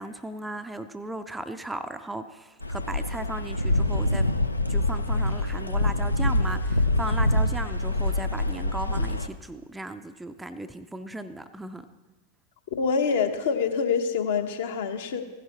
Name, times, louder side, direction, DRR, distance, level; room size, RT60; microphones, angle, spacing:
voice 1, 0.0-4.3 4.7-11.9, right 2 dB, 5° right, 9 dB, 0.4 m, -36 dB
sound 1, 2.6-9.3, left 1 dB, 85° left, 0.5 m, -25 dB
voice 2, 12.8-15.2, left 5 dB, 55° left, 6 dB, 0.9 m, -26 dB
15.5 x 11.0 x 2.9 m, 1.2 s
figure-of-eight pair, 90°, 0 cm